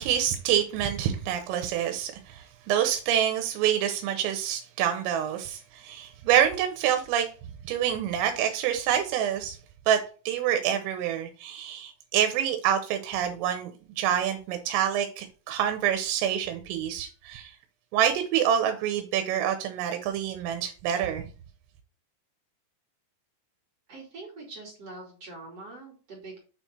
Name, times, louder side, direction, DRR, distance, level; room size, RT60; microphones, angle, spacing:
voice 1, 0.0-7.3 7.6-9.6 9.9-10.0 10.3-13.7 14.0-17.5 17.9-21.2, right 10 dB, 85° right, 3.4 m, -27 dB
voice 2, 23.9-26.4, right 3 dB, 40° right, 2.7 m, -43 dB
8.6 x 4.6 x 4.4 m
omnidirectional pair, 5.9 m